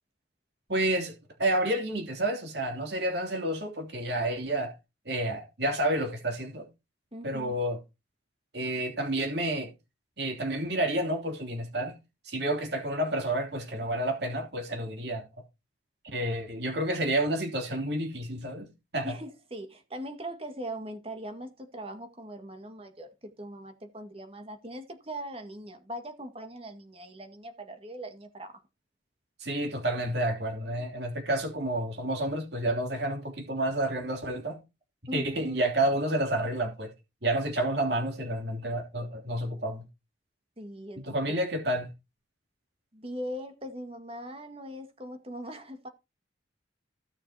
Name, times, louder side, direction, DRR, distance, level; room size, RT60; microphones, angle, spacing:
voice 1, 0.7-4.7 5.0-6.7 7.2-7.8 8.5-9.7 10.2-12.0 12.2-15.2 16.1-19.1 29.4-34.6 35.1-36.9 37.2-39.8 41.0-41.9, right 1 dB, 60° right, 3.1 m, -30 dB
voice 2, 7.1-7.6 19.0-28.6 35.1-35.7 40.6-41.4 42.9-45.9, equal, 30° right, 1.9 m, -40 dB
16.5 x 6.6 x 2.9 m
head